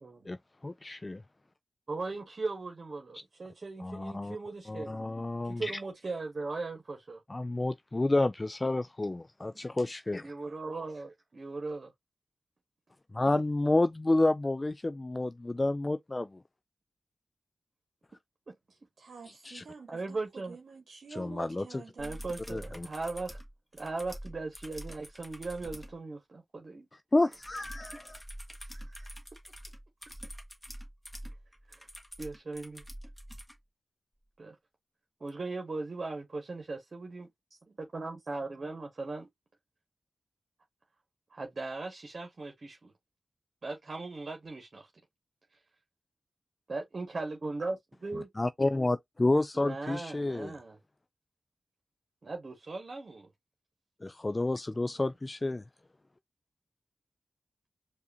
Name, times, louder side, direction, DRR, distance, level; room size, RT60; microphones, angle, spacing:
voice 1, 0.0-0.4 1.9-5.1 5.4-7.2 10.2-11.9 19.9-20.6 22.0-23.4 23.7-26.9 28.6-29.1 31.7-31.9 32.2-32.8 34.4-34.6 35.2-39.3 41.3-42.9 43.6-44.9 45.5-45.6 46.7-48.3 48.6-48.7 49.6-50.8 52.2-53.3, right 3 dB, 55° right, 1.1 m, -38 dB
voice 2, 0.6-1.2 3.8-4.4 4.7-5.8 7.3-10.3 13.1-16.3 19.4-19.6 21.1-21.8 22.5-22.9 27.1-28.2 48.4-50.5 54.0-55.6, left 2 dB, 30° left, 0.3 m, -30 dB
voice 3, 19.0-22.2, right 4 dB, 80° right, 0.9 m, -48 dB
sound 1, 22.0-26.0 27.3-33.6 35.3-35.4, equal, 5° left, 1.2 m, -46 dB
4.8 x 2.5 x 2.5 m
cardioid pair, 45°, 0 cm